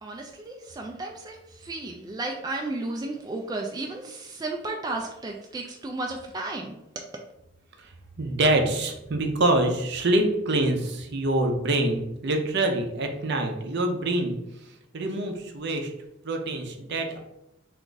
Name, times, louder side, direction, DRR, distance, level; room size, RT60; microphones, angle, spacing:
voice 1, 0.0-6.8, right 2 dB, 20° right, 1 dB, 0.3 m, -33 dB
voice 2, 8.2-14.4 14.9-15.9 16.2-17.2, right 2 dB, 60° right, 4 dB, 0.6 m, -25 dB
3.5 x 2.5 x 3.8 m, 0.85 s
head